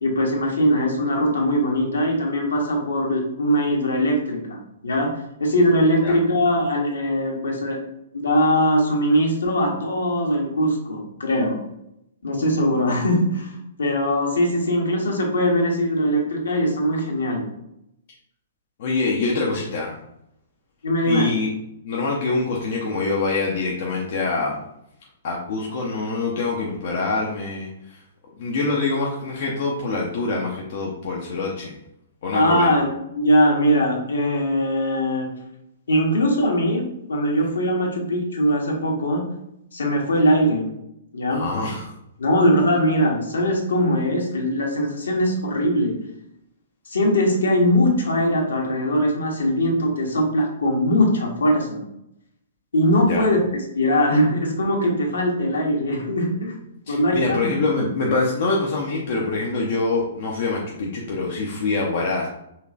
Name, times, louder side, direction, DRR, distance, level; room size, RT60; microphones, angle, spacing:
voice 1, 0.0-5.1 5.4-7.8 8.1-11.6 12.2-13.5 13.8-17.5 20.8-21.3 32.3-35.3 35.9-36.8 37.1-39.2 39.7-40.7 41.1-41.4 42.2-45.9 46.9-51.8 52.7-53.4 53.7-56.5 56.9-57.5, equal, 65° left, 0 dB, 1.1 m, -21 dB
voice 2, 18.8-20.0 21.1-21.5 21.8-24.6 25.2-28.0 28.4-31.7 32.2-32.8 41.3-41.9 53.0-53.3 56.9-62.3, left 3 dB, 45° left, -2 dB, 0.7 m, -25 dB
5.7 x 3.1 x 2.4 m, 0.81 s
figure-of-eight pair, 115°, 0 cm